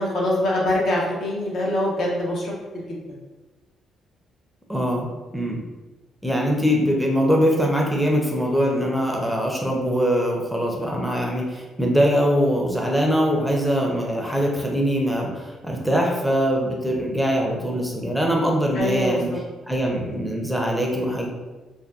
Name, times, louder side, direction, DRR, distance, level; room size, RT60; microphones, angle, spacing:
voice 1, 0.0-3.0 18.7-19.4, left 1 dB, 65° left, -3 dB, 0.7 m, -24 dB
voice 2, 4.7-5.1 5.3-5.6 6.2-19.3 19.7-21.3, equal, ahead, -1 dB, 0.5 m, -22 dB
2.6 x 2.2 x 2.3 m, 1.2 s
cardioid pair, 90°, 0 cm